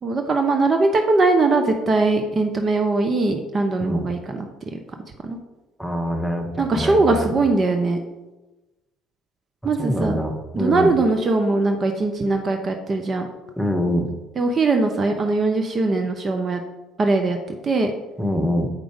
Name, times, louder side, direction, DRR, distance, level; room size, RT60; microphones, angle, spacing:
voice 1, 0.0-4.5 4.7-4.8 5.2-5.4 6.6-8.0 9.6-10.2 10.5-13.3 14.4-16.6 17.0-17.4 17.6-17.9, right 3 dB, 40° right, 4 dB, 0.9 m, -20 dB
voice 2, 5.8-7.4 9.8-10.9 13.6-14.1 18.2-18.7, equal, ahead, 4 dB, 1.5 m, -24 dB
7.4 x 5.1 x 5.1 m, 1.1 s
hypercardioid pair, 60°, 0 cm